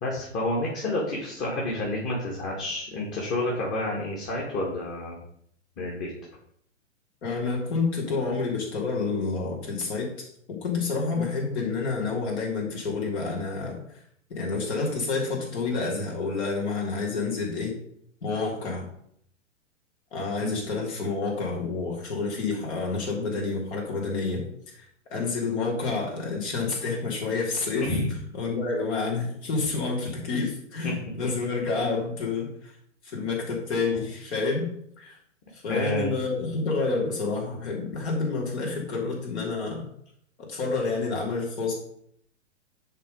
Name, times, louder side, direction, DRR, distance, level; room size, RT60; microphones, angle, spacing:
voice 1, 0.0-5.2 5.8-6.1 20.4-20.6 27.8-28.1 35.7-36.1, left 2 dB, 30° left, -3 dB, 2.2 m, -29 dB
voice 2, 7.2-14.0 14.3-17.7 18.2-18.9 20.1-24.4 24.7-24.8 25.1-27.9 28.3-32.7 33.0-34.7 35.0-35.2 35.5-39.8 40.4-41.7, left 4 dB, 60° left, -2 dB, 3.6 m, -29 dB
10.5 x 3.8 x 5.3 m, 0.69 s
figure-of-eight pair, 110°, 38 cm